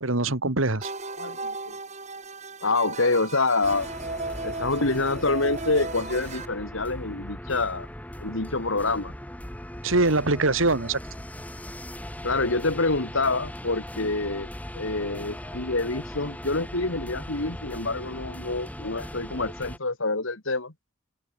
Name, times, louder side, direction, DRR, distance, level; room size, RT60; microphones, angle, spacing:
voice 1, 0.0-0.9 9.8-11.0, right 2 dB, 80° right, 2.4 m, -23 dB
sound 1, 0.8-6.5, right 3 dB, 35° right, 6.8 m, -35 dB
voice 2, 1.2-1.8 2.6-3.9 4.4-7.9 8.2-9.1 12.2-14.5 14.7-20.7, left 3 dB, 80° left, 2.6 m, -27 dB
sound 2, 3.6-19.8, equal, 5° left, 6.3 m, -39 dB
open air
head